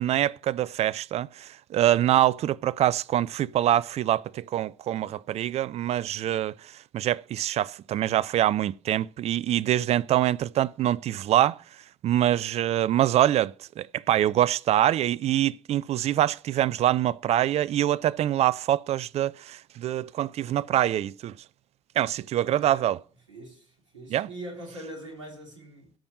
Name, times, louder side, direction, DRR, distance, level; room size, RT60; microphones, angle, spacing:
voice 1, 0.0-6.5 6.9-11.6 12.0-21.3 22.0-23.0 24.1-24.3, right 12 dB, 45° right, 0.5 m, -25 dB
voice 2, 22.4-22.9 23.3-25.9, right 1 dB, 85° right, 3.2 m, -42 dB
12.5 x 5.3 x 7.5 m
figure-of-eight pair, 55°, 15 cm